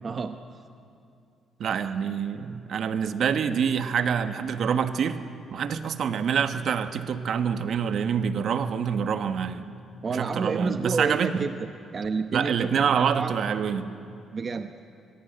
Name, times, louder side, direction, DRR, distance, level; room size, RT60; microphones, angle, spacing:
voice 1, 0.0-0.4 10.0-11.5 11.9-13.3 14.3-14.7, right 4 dB, 40° right, 8 dB, 0.9 m, -29 dB
voice 2, 1.6-5.2 5.5-9.7 10.1-11.4 12.3-13.9, right 7 dB, 65° right, 9 dB, 1.3 m, -26 dB
24.0 x 22.0 x 8.0 m, 2.5 s
cardioid pair, 90°, 0 cm